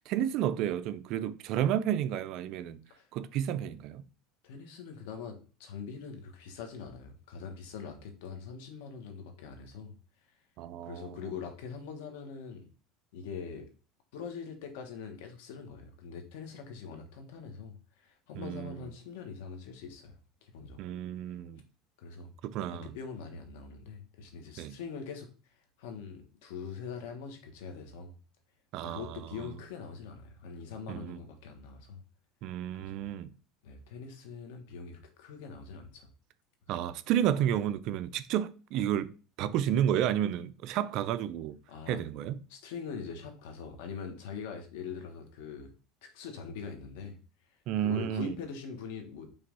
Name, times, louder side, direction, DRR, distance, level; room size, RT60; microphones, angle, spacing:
voice 1, 0.0-2.8 3.1-4.0 10.6-11.2 18.3-18.9 20.8-21.6 22.4-22.9 24.6-24.8 28.7-29.3 30.9-31.2 32.4-33.3 36.7-39.1 39.4-41.6 41.9-42.4 47.7-48.3, right 10 dB, 55° right, 0.5 m, -31 dB
voice 2, 4.4-9.9 10.8-12.6 13.1-13.6 14.1-20.1 20.4-21.0 22.0-22.3 22.7-25.3 25.8-28.1 28.8-32.0 32.7-33.0 33.6-36.1 41.7-42.0 42.5-45.7 46.0-47.2 47.8-49.3, left 5 dB, 85° left, 1.6 m, -43 dB
5.6 x 3.4 x 5.4 m
cardioid pair, 145°, 0 cm